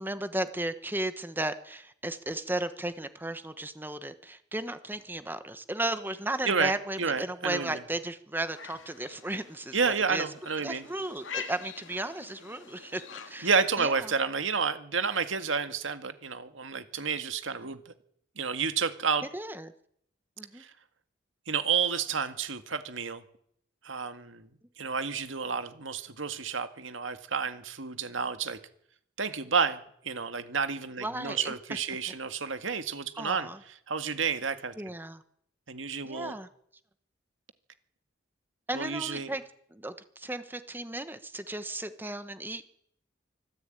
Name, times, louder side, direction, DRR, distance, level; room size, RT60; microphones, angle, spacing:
voice 1, 0.0-10.3 10.6-13.5 13.8-14.1 19.3-19.7 20.4-20.6 31.0-31.5 33.2-33.6 34.8-35.2 36.0-36.5 38.7-39.4 39.7-42.7, right 1 dB, 10° right, 10 dB, 1.1 m, -35 dB
voice 2, 7.0-7.8 9.7-10.9 13.4-17.9 18.4-19.3 20.6-20.7 21.5-23.2 23.8-24.5 24.8-28.6 29.2-34.7 35.7-36.4 38.7-39.3, right 5 dB, 85° right, 9 dB, 1.9 m, -30 dB
sound 1, 8.5-13.8, left 6 dB, 80° left, 2.3 m, -45 dB
24.5 x 15.0 x 9.1 m, 0.69 s
head